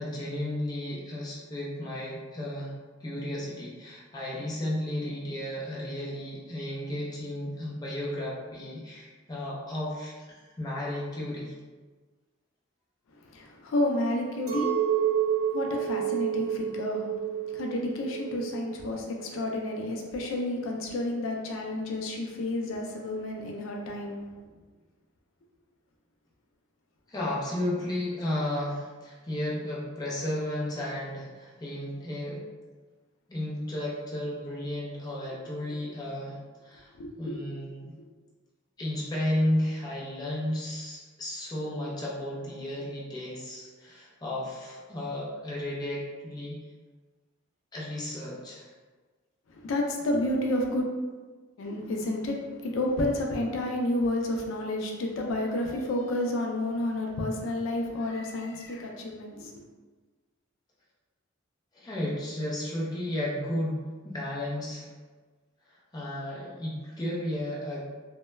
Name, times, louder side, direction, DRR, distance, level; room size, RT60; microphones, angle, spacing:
voice 1, 0.0-2.7 3.0-11.5 27.1-32.5 33.3-36.9 37.2-37.9 38.8-46.6 47.7-48.7 61.7-63.8 64.0-64.9 65.7-67.9, left 1 dB, 20° left, -5 dB, 0.5 m, -33 dB
voice 2, 13.1-24.4 37.0-37.4 49.5-50.9 51.6-59.7, left 1 dB, 75° left, 1 dB, 0.4 m, -31 dB
Chink clink, 14.5-19.9, right 9 dB, 85° right, 0.6 m, -30 dB
2.2 x 2.1 x 3.1 m, 1.3 s
head